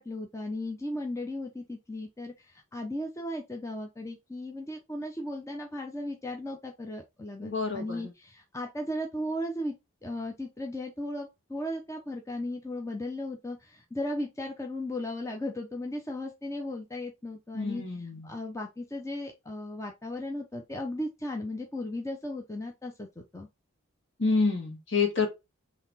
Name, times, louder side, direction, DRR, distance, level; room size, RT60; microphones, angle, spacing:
voice 1, 0.0-9.7 10.0-17.8 18.2-23.5, left 1 dB, 15° left, 0.6 m, -36 dB
voice 2, 7.4-8.0 17.5-18.3 24.2-25.3, left 4 dB, 55° left, 2.0 m, -28 dB
4.0 x 3.2 x 4.0 m
head